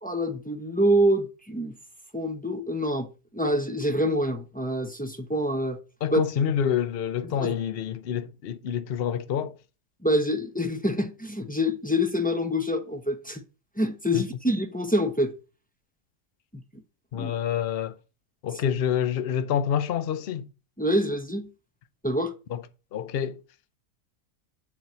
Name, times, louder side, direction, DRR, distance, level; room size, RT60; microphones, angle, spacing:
voice 1, 0.0-1.7 2.1-3.1 3.3-5.8 6.1-6.2 7.3-7.6 10.0-13.4 13.8-15.3 16.5-16.6 17.1-17.3 20.8-21.5 22.0-22.3, equal, 10° left, 0.6 m, -26 dB
voice 2, 6.0-9.5 14.1-14.2 17.1-18.0 18.4-20.5 22.5-22.6 22.9-23.4, left 8 dB, 55° left, 0.7 m, -27 dB
7.5 x 4.5 x 6.8 m
omnidirectional pair, 1.6 m